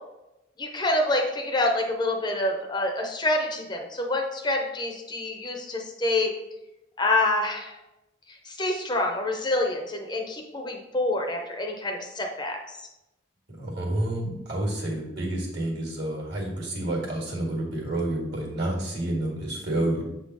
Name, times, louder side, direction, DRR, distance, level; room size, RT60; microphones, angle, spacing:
voice 1, 0.6-6.3 7.0-7.8 8.4-12.6, left 2 dB, 20° left, 2 dB, 0.6 m, -27 dB
voice 2, 13.6-20.0, right 1 dB, 60° right, -1 dB, 1.8 m, -29 dB
6.8 x 3.6 x 3.9 m, 0.95 s
head